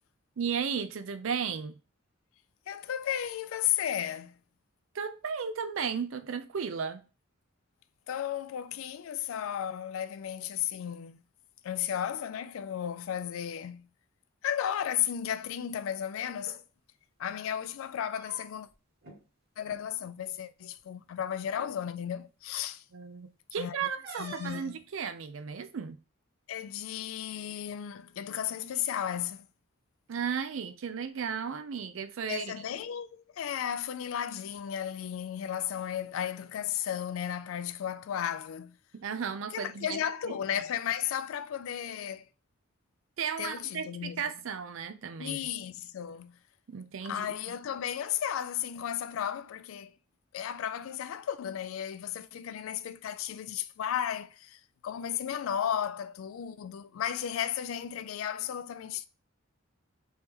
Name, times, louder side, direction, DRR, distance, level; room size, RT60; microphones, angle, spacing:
voice 1, 0.4-1.8 4.9-7.0 22.9-26.0 30.1-32.5 38.9-40.0 43.2-45.4 46.7-47.3, right 6 dB, 70° right, 0.4 m, -34 dB
voice 2, 2.7-4.4 8.1-11.2 11.6-13.9 14.4-16.6 17.2-18.7 19.6-22.8 23.6-23.8 24.2-24.8 26.5-29.5 32.3-38.8 39.5-42.2 43.4-44.2 45.2-46.4 47.0-49.9 50.3-59.1, left 9 dB, 75° left, 0.3 m, -34 dB
sound 1, 16.3-16.6 17.8-18.7 19.0-19.2 19.6-19.8 20.8-20.9 21.5-21.8 24.0-24.8, right 1 dB, 50° right, 1.3 m, -47 dB
3.2 x 2.9 x 3.5 m
head